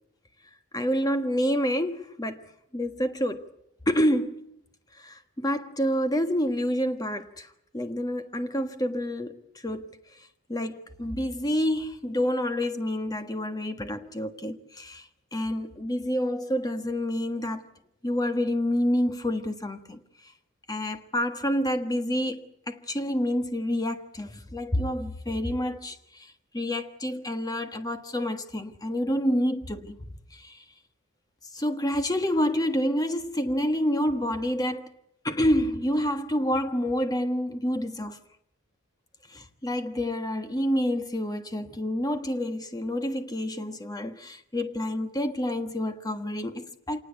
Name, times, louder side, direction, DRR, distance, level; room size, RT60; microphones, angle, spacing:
voice 1, 0.7-2.5 2.7-3.5 3.8-4.5 5.0-7.5 7.7-9.9 10.5-17.7 18.0-20.0 20.7-30.0 30.3-30.6 31.5-34.9 35.2-38.2 39.3-47.0, equal, 15° left, 1.5 m, -28 dB
26.5 x 19.5 x 8.2 m
head